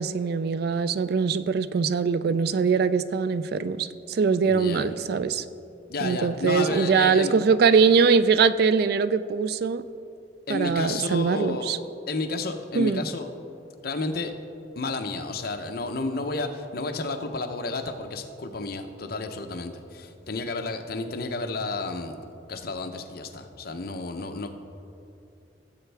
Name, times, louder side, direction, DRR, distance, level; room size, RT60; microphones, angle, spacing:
voice 1, 0.0-5.4 6.0-9.8 10.5-11.8 12.7-13.0, right 5 dB, 60° right, 14 dB, 0.3 m, -22 dB
voice 2, 4.5-4.9 5.9-7.3 10.5-13.3 13.8-14.3 14.8-22.2 22.5-24.5, left 3 dB, 60° left, 6 dB, 0.7 m, -31 dB
16.0 x 7.9 x 3.4 m, 2.6 s
head